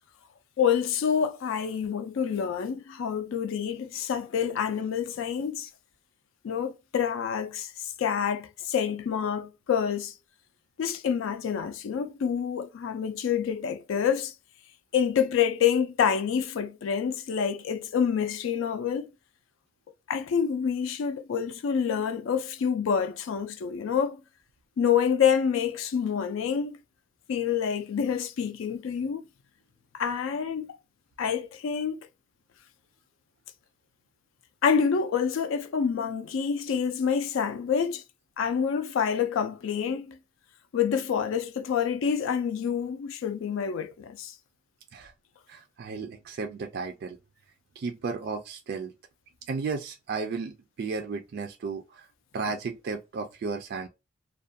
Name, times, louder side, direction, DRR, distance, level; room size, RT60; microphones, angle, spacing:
voice 1, 0.6-5.7 6.4-10.1 10.8-14.3 14.9-19.1 20.1-24.2 24.8-26.8 27.3-29.2 29.9-30.8 31.2-32.1 34.6-38.0 38.4-40.2 40.7-44.3, left 7 dB, 70° left, 0.3 m, -27 dB
voice 2, 45.5-47.2 47.8-48.9 49.5-50.5 50.8-52.1 52.3-53.9, right 4 dB, 50° right, 0.3 m, -34 dB
2.4 x 2.1 x 2.6 m
head